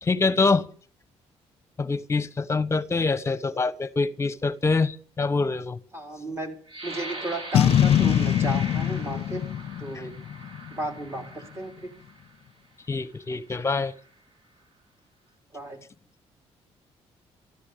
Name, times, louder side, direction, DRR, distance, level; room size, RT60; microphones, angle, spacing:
voice 1, 0.0-0.7 1.8-5.8 9.9-10.1 12.9-13.9, left 4 dB, 25° left, 16 dB, 1.1 m, -25 dB
voice 2, 5.9-6.5 6.8-9.4 9.8-10.1 10.7-11.9 15.5-15.8, right 2 dB, 25° right, 4 dB, 4.3 m, -34 dB
sound 1, 6.7-12.3 13.0-13.1 13.6-14.1, right 2 dB, 50° right, 5.4 m, -41 dB
Boom, 7.5-10.9, left 10 dB, 60° left, 0.6 m, -23 dB
14.0 x 14.0 x 6.8 m, 0.43 s
cardioid pair, 110°, 11 cm